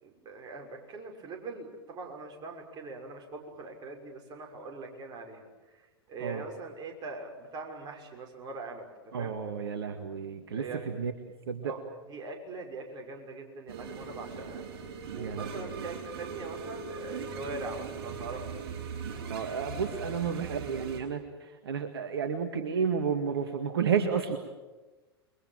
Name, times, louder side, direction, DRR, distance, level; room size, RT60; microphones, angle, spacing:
voice 1, 0.0-9.4 10.5-10.9 11.6-11.8 12.1-14.6 15.1-18.5 19.9-20.2, right 3 dB, 30° right, 2 dB, 6.4 m, -42 dB
voice 2, 9.1-11.1 11.5-11.7 15.2-15.9 19.3-24.4, right 6 dB, 70° right, 7 dB, 1.9 m, -32 dB
sound 1, 13.7-21.0, right 5 dB, 50° right, 7.3 m, -40 dB
29.0 x 23.0 x 7.5 m, 1.2 s
figure-of-eight pair, 95°, 13 cm